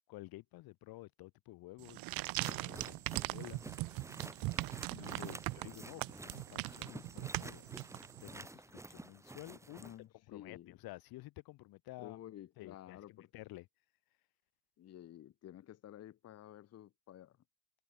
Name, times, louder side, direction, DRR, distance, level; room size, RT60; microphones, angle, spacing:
voice 1, 0.1-3.6 4.9-9.9 10.3-12.2 12.6-13.7, left 19 dB, 80° left, 2.4 m, -52 dB
sound 1, 1.8-8.4, right 21 dB, 75° right, 0.7 m, -40 dB
sound 2, 2.4-9.9, right 2 dB, 10° right, 2.6 m, -51 dB
voice 2, 9.8-10.7 12.0-13.3 14.8-17.4, left 12 dB, 45° left, 1.4 m, -52 dB
cardioid pair, 165°, 35 cm